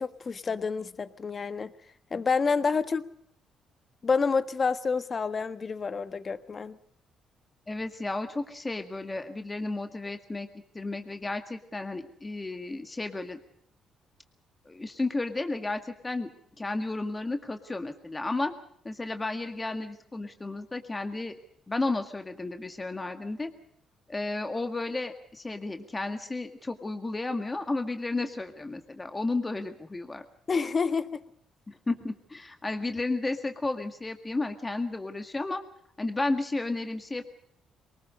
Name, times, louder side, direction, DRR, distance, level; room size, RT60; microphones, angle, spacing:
voice 1, 0.0-1.7 2.1-3.1 4.0-6.8 30.5-31.2, left 5 dB, 40° left, 12 dB, 1.4 m, -28 dB
voice 2, 7.7-10.5 10.7-13.4 14.7-16.3 16.6-18.5 18.8-21.4 21.7-23.5 24.1-30.2 31.7-35.6 36.0-37.2, left 2 dB, 20° left, 6 dB, 1.9 m, -33 dB
23.5 x 20.0 x 6.6 m, 0.67 s
cardioid pair, 90°, 0 cm